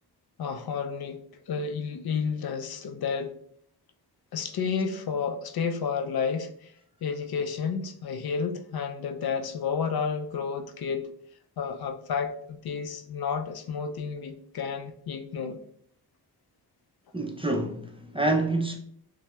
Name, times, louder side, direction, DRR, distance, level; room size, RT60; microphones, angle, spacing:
voice 1, 0.4-1.2 1.5-3.3 4.3-6.7 7.0-11.1 11.6-15.6, left 6 dB, 65° left, 0.5 m, -31 dB
voice 2, 17.1-18.8, right 2 dB, 15° right, 0.4 m, -27 dB
5.6 x 2.0 x 2.2 m
wide cardioid pair, 95°, 41 cm